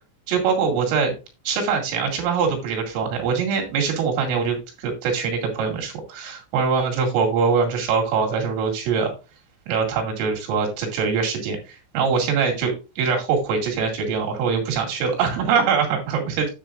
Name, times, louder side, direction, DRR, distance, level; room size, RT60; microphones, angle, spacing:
voice 1, 0.3-1.1 1.5-9.1 9.7-16.5, right 5 dB, 75° right, 1 dB, 4.8 m, -23 dB
9.8 x 7.8 x 2.5 m, 0.30 s
omnidirectional pair, 6.0 m